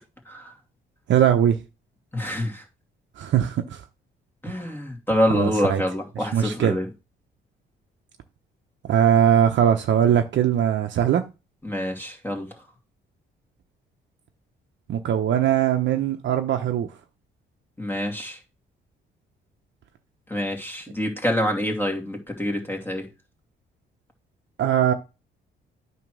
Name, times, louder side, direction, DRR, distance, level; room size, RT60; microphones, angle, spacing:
voice 1, 1.1-1.6 3.2-3.8 5.3-5.8 6.2-6.8 8.9-11.3 14.9-16.9 24.6-24.9, right 9 dB, 65° right, 0.9 m, -20 dB
voice 2, 2.1-2.6 4.4-6.9 11.6-12.5 17.8-18.4 20.3-23.1, left 1 dB, 10° left, 2.5 m, -26 dB
9.1 x 3.1 x 6.2 m
cardioid pair, 90°, 20 cm